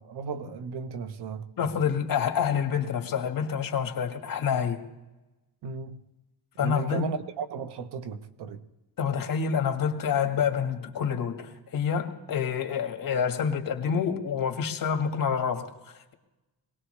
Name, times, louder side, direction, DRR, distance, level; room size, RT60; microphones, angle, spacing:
voice 1, 0.0-1.5 5.6-6.0 6.6-8.6, right 5 dB, 75° right, 1.1 m, -35 dB
voice 2, 1.6-4.8 6.6-7.1 9.0-15.7, left 7 dB, 55° left, 1.8 m, -27 dB
22.5 x 18.5 x 3.3 m
cardioid pair, 105°, 40 cm